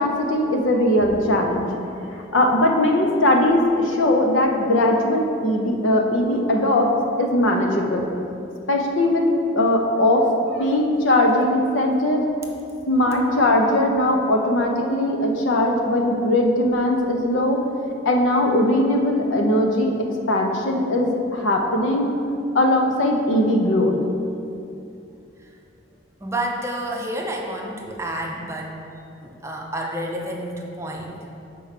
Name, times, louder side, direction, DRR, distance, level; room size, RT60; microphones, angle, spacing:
voice 1, 0.0-1.7 2.3-8.1 8.7-9.3 9.5-10.3 10.6-12.3 12.9-17.6 18.0-19.9 20.3-22.2 22.5-23.9, left 1 dB, 85° left, 2 dB, 0.7 m, -20 dB
voice 2, 26.2-28.8 29.2-31.3, right 1 dB, 15° right, 0 dB, 0.5 m, -29 dB
4.6 x 4.6 x 5.8 m, 2.6 s
head